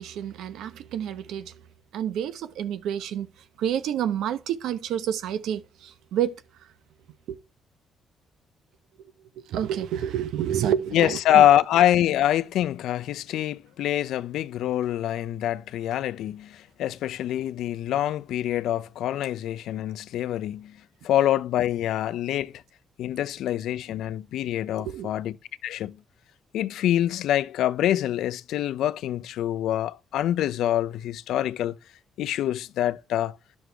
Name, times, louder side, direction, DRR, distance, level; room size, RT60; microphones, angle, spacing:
voice 1, 0.0-1.5 1.9-3.3 3.6-6.4 7.3-7.4 9.5-11.5 24.8-25.1, right 10 dB, 85° right, 0.8 m, -29 dB
voice 2, 10.9-20.8 21.0-22.6 23.0-25.4 25.6-26.0 26.5-31.8 32.2-33.4, left 12 dB, 80° left, 0.4 m, -25 dB
11.0 x 6.2 x 3.4 m
cardioid pair, 90°, 0 cm